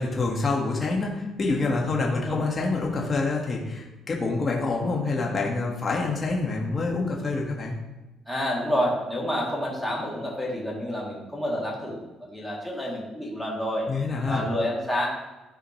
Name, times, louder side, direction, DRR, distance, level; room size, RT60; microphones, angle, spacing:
voice 1, 0.0-7.7 13.9-14.5, left 3 dB, 35° left, -1 dB, 1.5 m, -27 dB
voice 2, 8.3-13.9 14.3-15.1, equal, ahead, -5 dB, 2.6 m, -29 dB
13.0 x 4.9 x 3.1 m, 1.1 s
cardioid pair, 95°, 0 cm